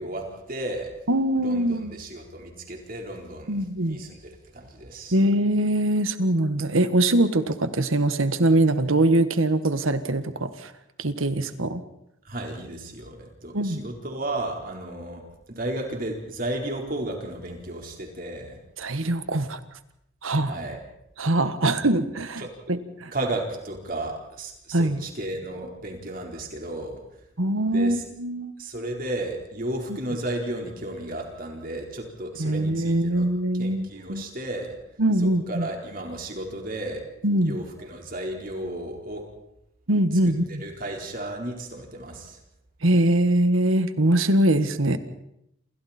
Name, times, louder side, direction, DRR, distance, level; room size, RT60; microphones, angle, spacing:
voice 1, 0.0-0.9 1.4-5.2 12.2-15.2 15.5-18.6 20.4-20.8 21.6-21.8 22.4-22.5 23.1-27.0 27.7-28.0 28.6-33.3 33.6-34.8 35.2-37.0 37.4-39.3 40.3-42.4, right 1 dB, 45° right, 1 dB, 4.3 m, -34 dB
voice 2, 1.1-2.0 3.5-4.0 5.1-10.7 11.0-11.8 13.5-13.8 18.8-19.6 20.2-20.5 21.2-22.4 22.7-23.1 24.7-25.0 27.4-28.5 32.4-34.2 35.0-35.7 37.2-37.6 39.9-40.6 42.8-45.0, right 1 dB, 80° right, 11 dB, 1.6 m, -22 dB
28.0 x 28.0 x 4.4 m, 0.80 s
head